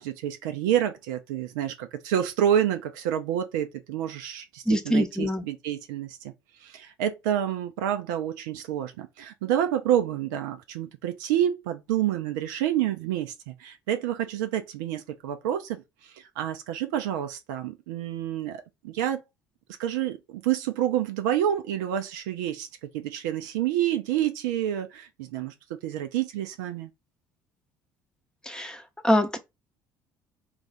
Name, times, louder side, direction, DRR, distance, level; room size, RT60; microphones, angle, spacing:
voice 1, 0.0-6.3 6.6-15.8 16.2-19.2 19.8-22.7 22.9-25.5 25.8-26.9, right 11 dB, 65° right, 0.5 m, -28 dB
voice 2, 4.7-5.4 28.5-29.4, equal, 5° left, 0.7 m, -24 dB
3.1 x 2.4 x 3.8 m
figure-of-eight pair, 55°, 11 cm